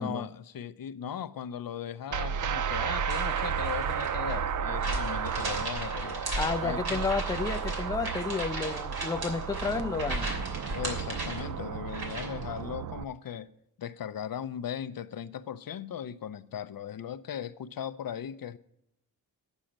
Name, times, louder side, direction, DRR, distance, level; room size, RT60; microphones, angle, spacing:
voice 1, 0.0-7.0 10.7-13.5 13.8-18.6, left 9 dB, 65° left, 0.6 m, -38 dB
sound 1, 2.1-13.0, right 8 dB, 55° right, 0.5 m, -33 dB
sound 2, 2.9-12.4, right 1 dB, 70° right, 3.0 m, -37 dB
voice 2, 6.3-10.3, left 4 dB, 10° left, 0.4 m, -31 dB
8.9 x 6.3 x 8.5 m
wide cardioid pair, 130°, 38 cm